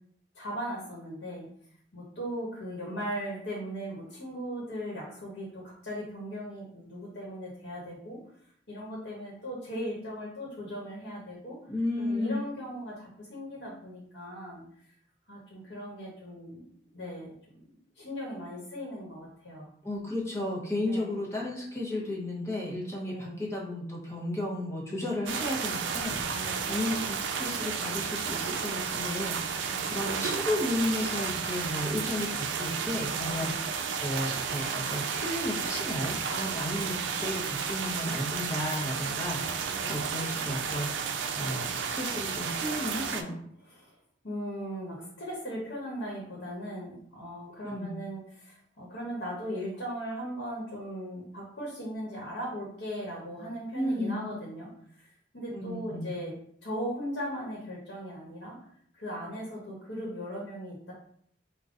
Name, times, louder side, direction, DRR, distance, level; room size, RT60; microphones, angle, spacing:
voice 1, 0.3-1.5 1.9-8.2 8.7-11.6 12.0-14.6 15.3-16.6 16.9-17.3 18.0-19.7 20.7-21.2 23.0-23.4 26.3-26.8 29.6-29.8 33.4-33.6 39.8-40.0 43.6-43.9 44.2-54.7 54.9-56.3 56.6-58.6 58.9-60.9, equal, 75° left, -4 dB, 1.1 m, -38 dB
voice 2, 11.7-12.5 19.8-43.3 47.6-47.9 53.7-54.2 55.5-56.1, left 1 dB, 15° left, -3 dB, 0.7 m, -33 dB
sound 1, 25.3-43.2, right 6 dB, 90° right, 0.4 m, -32 dB
3.7 x 2.2 x 3.7 m, 0.65 s
head